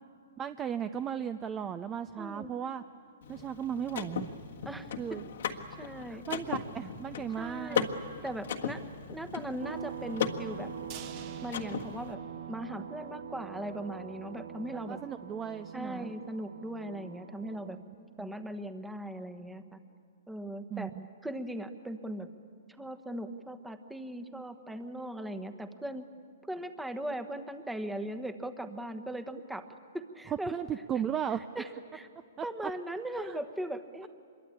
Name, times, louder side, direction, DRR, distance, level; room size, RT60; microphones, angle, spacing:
voice 1, 0.4-2.8 3.3-4.3 5.0-5.2 6.1-7.9 14.9-16.1 17.7-18.3 20.7-21.1 30.3-31.4 32.4-32.5 33.1-33.4, right 8 dB, 20° right, 12 dB, 0.6 m, -36 dB
voice 2, 2.2-2.5 4.6-4.9 5.5-6.2 7.4-7.9 8.2-8.8 9.1-10.7 11.4-12.2 12.5-15.0 15.7-17.8 18.2-19.8 20.3-20.9 21.2-22.3 22.8-26.0 26.5-29.7 29.9-30.5 31.5-32.1 32.4-34.1, right 1 dB, 5° right, 9 dB, 1.2 m, -39 dB
Car / Mechanisms, 3.2-12.1, left 7 dB, 70° left, 1.6 m, -37 dB
sound 1, 9.6-17.8, right 8 dB, 75° right, 1.0 m, -44 dB
sound 2, 10.9-13.0 13.4-13.5 13.8-13.9, right 9 dB, 40° right, 1.6 m, -50 dB
25.5 x 23.0 x 8.7 m, 2.3 s
hypercardioid pair, 135°, 0 cm